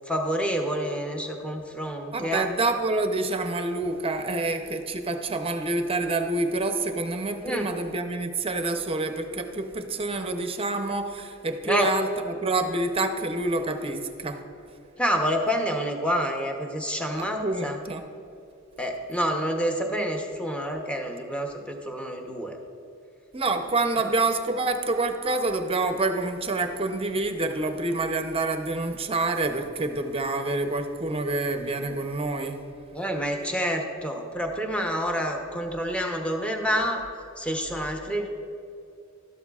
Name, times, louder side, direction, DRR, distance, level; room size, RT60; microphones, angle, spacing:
voice 1, 0.1-2.5 7.4-7.7 11.6-11.9 15.0-17.8 18.8-22.6 32.9-37.0 37.4-38.3, equal, 5° left, 2 dB, 0.8 m, -28 dB
voice 2, 2.1-14.4 17.1-18.0 23.3-32.6, right 2 dB, 25° right, 6 dB, 0.6 m, -27 dB
13.0 x 11.5 x 2.4 m, 2.6 s
head